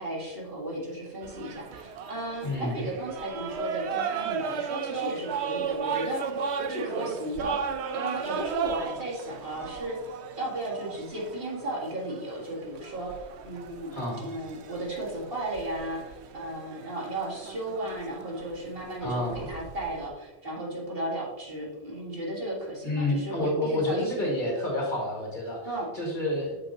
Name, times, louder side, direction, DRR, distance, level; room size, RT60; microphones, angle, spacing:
voice 1, 0.0-24.3 25.7-25.9, right 1 dB, 55° right, -4 dB, 2.1 m, -35 dB
sound 1, 1.2-20.1, right 6 dB, 75° right, 0.9 m, -36 dB
voice 2, 2.4-2.9 13.9-14.3 19.0-19.6 22.8-25.6 25.9-26.5, left 1 dB, 45° left, -2 dB, 2.1 m, -29 dB
8.3 x 6.4 x 2.9 m, 1.1 s
omnidirectional pair, 1.2 m